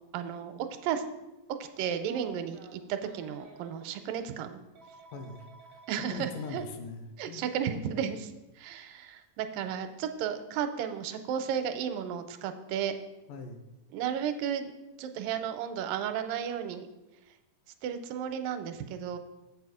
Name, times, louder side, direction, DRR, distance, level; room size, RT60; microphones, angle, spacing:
voice 1, 0.1-1.0 1.6-4.6 5.9-6.6 7.2-12.9 13.9-14.7 15.0-16.9 17.8-19.2, right 8 dB, 80° right, 9 dB, 2.3 m, -33 dB
Telephone, 2.0-3.9 4.7-6.6 8.0-8.1 9.7-9.9, right 3 dB, 65° right, 0.8 m, -53 dB
voice 2, 5.1-5.8 6.1-7.4 13.3-13.6, left 3 dB, 75° left, 6 dB, 2.3 m, -41 dB
7.5 x 6.9 x 4.9 m, 0.98 s
omnidirectional pair, 4.0 m